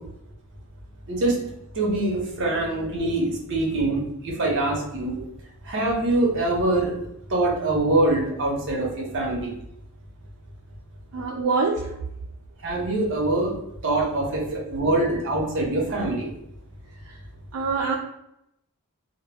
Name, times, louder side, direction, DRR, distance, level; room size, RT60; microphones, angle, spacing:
voice 1, 1.7-5.1 5.6-6.9 7.3-9.5 12.6-13.6 13.8-16.3, right 2 dB, 55° right, -1 dB, 0.8 m, -24 dB
voice 2, 11.1-11.9 14.0-14.4 15.0-15.1 17.1-17.2 17.5-18.0, right 4 dB, 75° right, 0 dB, 0.3 m, -26 dB
2.1 x 2.1 x 3.3 m, 0.79 s
head